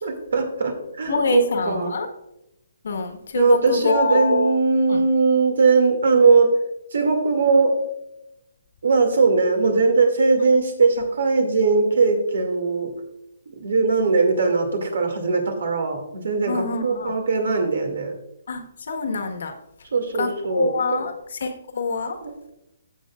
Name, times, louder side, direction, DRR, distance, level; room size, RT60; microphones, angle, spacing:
voice 1, 0.0-2.0 3.3-6.6 6.9-7.7 8.8-12.9 13.6-18.1 19.9-21.0 22.2-22.3, right 4 dB, 75° right, 5 dB, 2.3 m, -20 dB
voice 2, 1.1-2.1 2.8-4.5 4.9-5.0 16.5-17.1 18.5-19.5 20.2-22.2, left 4 dB, 70° left, 6 dB, 1.4 m, -25 dB
15.0 x 6.5 x 2.5 m, 0.85 s
hypercardioid pair, 155°, 0 cm